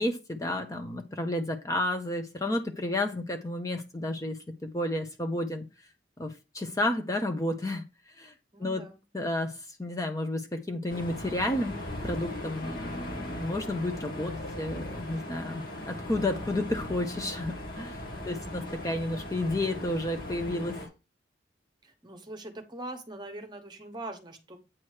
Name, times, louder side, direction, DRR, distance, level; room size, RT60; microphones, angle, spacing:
voice 1, 0.0-5.6 6.2-7.8 8.2-8.3 8.6-8.8 9.1-20.8, left 1 dB, 20° left, 0.7 m, -31 dB
voice 2, 8.5-9.0 18.1-18.9 21.8-24.6, right 1 dB, 25° right, 1.1 m, -43 dB
sound 1, 10.9-20.9, left 1 dB, 50° left, 1.8 m, -38 dB
8.7 x 3.0 x 6.4 m
head